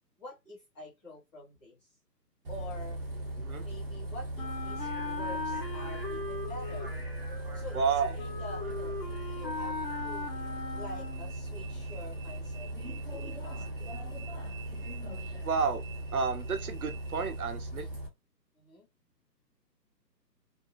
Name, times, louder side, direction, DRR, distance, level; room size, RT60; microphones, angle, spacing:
voice 1, 0.2-1.9 2.5-3.0 3.6-7.0 7.5-7.8 8.1-10.3 10.7-14.2 18.5-18.9, left 1 dB, 10° left, 1.1 m, -47 dB
Bus, 2.4-18.1, right 1 dB, 35° right, 1.0 m, -38 dB
Wind instrument woodwind instrument, 4.4-11.4, left 3 dB, 85° left, 0.8 m, -39 dB
voice 2, 7.7-8.2 15.4-15.8 16.1-17.9, right 5 dB, 60° right, 0.7 m, -30 dB
2.6 x 2.3 x 2.9 m
figure-of-eight pair, 145°, 50 cm